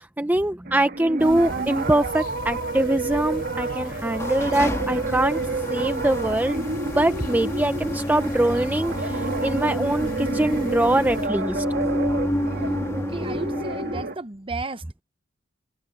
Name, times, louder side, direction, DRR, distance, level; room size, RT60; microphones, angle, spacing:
voice 1, 0.0-5.4 5.7-6.7 7.0-11.6, right 1 dB, 10° right, 0.5 m, -23 dB
sound 1, 0.7-14.2, right 3 dB, 55° right, 1.8 m, -30 dB
sound 2, 1.2-11.3, left 1 dB, 50° left, 4.3 m, -39 dB
sound 3, 3.8-14.1, equal, 15° left, 1.5 m, -30 dB
voice 2, 12.9-15.0, right 3 dB, 30° right, 1.0 m, -34 dB
head